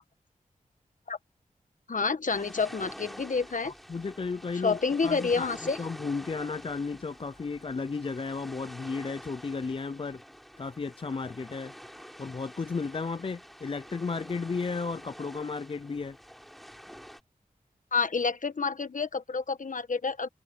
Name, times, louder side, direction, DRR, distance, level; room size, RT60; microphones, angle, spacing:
voice 1, 1.9-3.7 4.5-5.8 17.9-20.3, left 4 dB, 65° left, 1.3 m, -29 dB
sound 1, 2.3-17.2, equal, ahead, 3.8 m, -47 dB
voice 2, 3.6-4.8 5.0-5.5 5.8-10.2 10.6-11.7 12.2-16.1, left 4 dB, 40° left, 0.4 m, -34 dB
wide cardioid pair, 80°, 15 cm